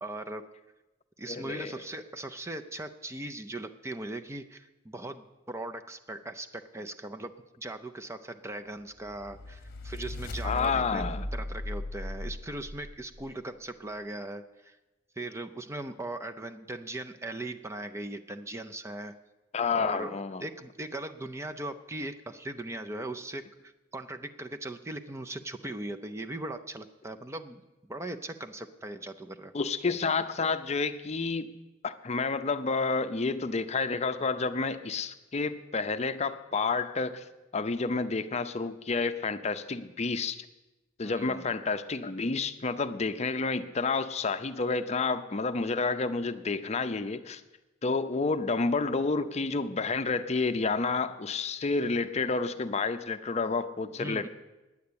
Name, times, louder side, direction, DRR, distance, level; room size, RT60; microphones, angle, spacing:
voice 1, 0.0-0.5 1.2-11.0 11.3-14.8 15.2-19.2 19.7-23.4 23.9-29.5 41.0-41.4 54.0-54.3, right 2 dB, 15° right, 7 dB, 0.5 m, -39 dB
voice 2, 1.3-1.8 10.4-11.3 19.5-20.4 29.5-31.5 31.8-37.2 37.5-40.4 41.0-47.4 47.8-54.3, left 4 dB, 35° left, 10 dB, 0.6 m, -30 dB
sound 1, 9.0-13.3, left 1 dB, 55° left, 0.9 m, -37 dB
9.6 x 9.3 x 8.6 m, 1.1 s
head